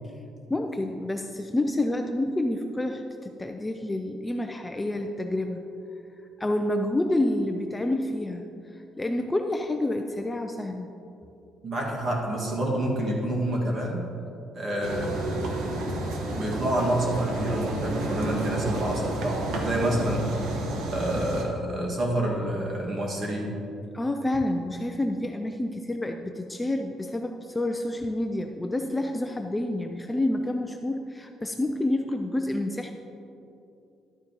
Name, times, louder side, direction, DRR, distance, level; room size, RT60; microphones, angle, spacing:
voice 1, 0.5-5.6 6.4-8.4 8.7-10.9 23.9-32.9, left 1 dB, 10° left, 4 dB, 0.3 m, -28 dB
voice 2, 11.6-14.1 14.5-15.8 16.3-20.3 20.9-23.5, right 1 dB, 35° right, -2 dB, 1.7 m, -28 dB
sound 1, 14.8-21.4, right 2 dB, 85° right, 1.2 m, -31 dB
12.0 x 9.0 x 2.9 m, 2.8 s
cardioid pair, 160°, 0 cm